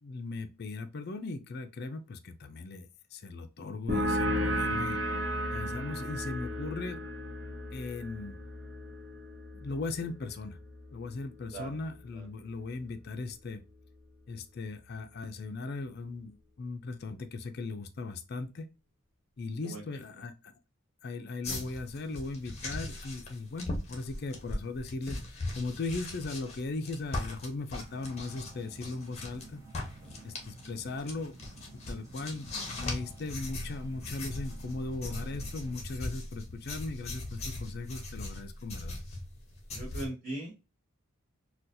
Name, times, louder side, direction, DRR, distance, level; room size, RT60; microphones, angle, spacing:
voice 1, 0.0-5.0 5.5-7.0 7.7-8.4 9.5-10.6 10.9-13.6 14.3-18.7 19.4-20.5 21.0-29.7 30.2-31.3 31.7-39.0, left 3 dB, 45° left, 0.4 m, -38 dB
sound 1, 3.9-11.1, equal, 55° right, 1.0 m, -34 dB
sound 2, 21.4-29.5 29.7-40.1, left 2 dB, 30° left, 0.9 m, -39 dB
sound 3, 27.8-35.8, right 2 dB, 15° right, 0.8 m, -52 dB
voice 2, 39.7-40.6, right 1 dB, 35° right, 1.5 m, -40 dB
4.1 x 2.3 x 2.5 m
head